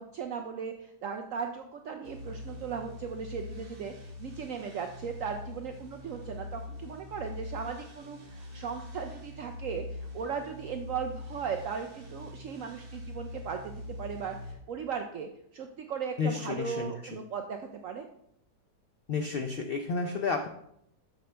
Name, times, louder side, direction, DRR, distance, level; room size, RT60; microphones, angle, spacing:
voice 1, 0.0-18.1, right 6 dB, 65° right, 5 dB, 0.8 m, -37 dB
sound 1, 2.0-14.5, left 2 dB, 35° right, 1.5 m, -43 dB
voice 2, 16.2-16.9 19.1-20.5, left 5 dB, 85° left, 4 dB, 0.5 m, -31 dB
7.8 x 6.6 x 3.3 m, 0.73 s
omnidirectional pair, 1.8 m